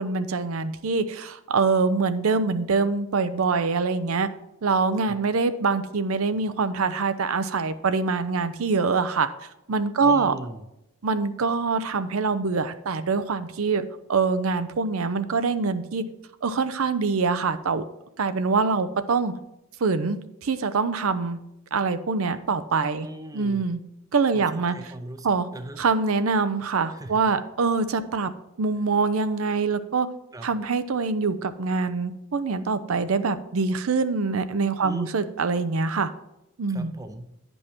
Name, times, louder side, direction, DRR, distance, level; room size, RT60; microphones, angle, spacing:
voice 1, 0.0-4.3 4.6-9.3 9.7-10.3 11.0-13.8 14.1-16.0 16.4-17.8 18.2-19.3 19.8-21.4 21.7-23.1 23.3-23.8 24.1-24.7 25.2-25.5 25.8-28.3 28.6-30.1 30.4-36.1 36.6-36.9, right 4 dB, 80° right, 12 dB, 0.6 m, -24 dB
voice 2, 10.0-10.6 23.0-23.6 24.3-25.3 25.5-25.8 26.9-27.2 30.3-30.5 34.8-35.1 36.7-37.3, right 2 dB, 15° right, 8 dB, 0.5 m, -38 dB
9.7 x 5.4 x 4.4 m, 0.87 s
head